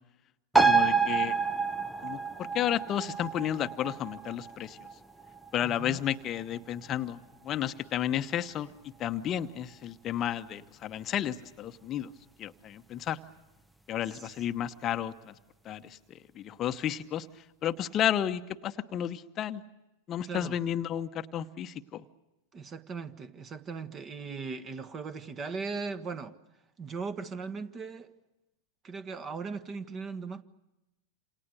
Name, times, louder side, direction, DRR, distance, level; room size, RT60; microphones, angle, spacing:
sound 1, 0.5-7.5 7.9-8.0, right 5 dB, 5° right, 0.9 m, -29 dB
voice 1, 0.6-1.4 2.0-4.8 5.5-8.7 9.0-12.1 12.4-13.2 13.9-15.3 15.6-17.3 17.6-19.6 20.1-22.0, left 10 dB, 30° left, 1.0 m, -32 dB
voice 2, 5.6-6.0 14.1-14.3 20.3-20.6 22.5-26.3 26.8-28.1 28.8-30.4, right 4 dB, 25° right, 1.4 m, -38 dB
28.0 x 28.0 x 6.6 m
figure-of-eight pair, 90°, 0 cm